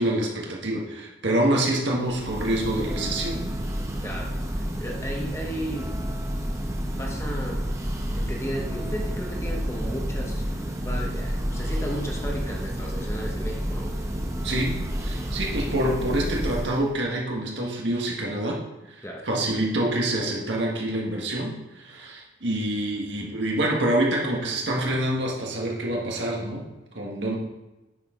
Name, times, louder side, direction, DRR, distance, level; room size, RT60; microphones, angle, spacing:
voice 1, 0.0-3.6 14.4-18.6 19.0-26.7 27.0-27.3, right 1 dB, 65° right, -1 dB, 1.6 m, -26 dB
Church bell, 2.0-16.9, equal, 15° right, 0.8 m, -30 dB
voice 2, 4.0-6.0 6.8-7.7 8.2-14.0 19.0-19.3, equal, 15° left, 0 dB, 1.2 m, -35 dB
9.0 x 6.6 x 3.8 m, 1.0 s
head